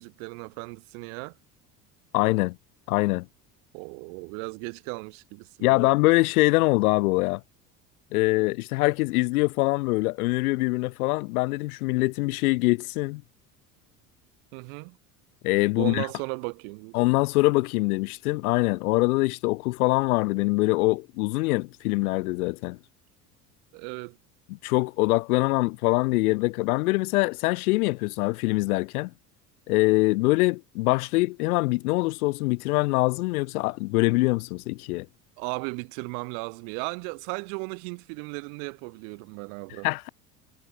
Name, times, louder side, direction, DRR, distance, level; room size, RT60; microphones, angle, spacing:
voice 1, 0.0-1.4 3.7-5.9 14.5-15.0 15.7-17.0 23.7-24.2 35.4-39.9, right 40 dB or more, 60° right, 1.1 m, -36 dB
voice 2, 2.1-2.6 2.9-3.3 5.6-7.4 8.1-13.2 15.4-16.1 16.9-22.8 24.5-29.1 29.7-35.1 39.8-40.1, left 23 dB, 65° left, 0.6 m, -24 dB
figure-of-eight pair, 70°, 47 cm